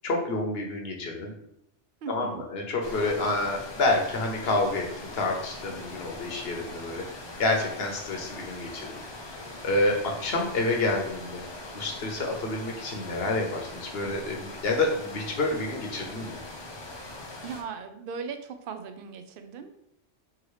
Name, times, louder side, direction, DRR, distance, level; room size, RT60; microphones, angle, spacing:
voice 1, 0.0-1.3 2.1-7.0 7.4-9.0 9.6-11.4 11.7-16.4, left 2 dB, 60° left, 1 dB, 1.0 m, -28 dB
voice 2, 2.0-2.5 17.4-19.7, right 6 dB, 60° right, 7 dB, 0.6 m, -38 dB
sound 1, 2.8-17.6, left 2 dB, 40° left, 0.4 m, -41 dB
4.7 x 2.8 x 3.1 m, 0.75 s
omnidirectional pair, 1.2 m